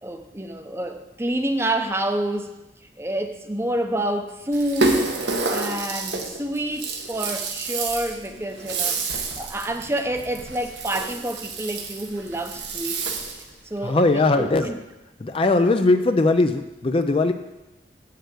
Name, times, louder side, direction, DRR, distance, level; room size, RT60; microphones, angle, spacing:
voice 1, 0.0-2.5 3.0-5.1 5.5-13.1 13.6-14.8, right 1 dB, 15° right, 6 dB, 0.7 m, -28 dB
Rattle (instrument), 4.5-13.5, right 3 dB, 85° right, 1.3 m, -29 dB
voice 2, 13.8-14.7 15.2-17.3, left 2 dB, 30° left, 8 dB, 0.4 m, -19 dB
7.8 x 6.6 x 8.0 m, 1.0 s
head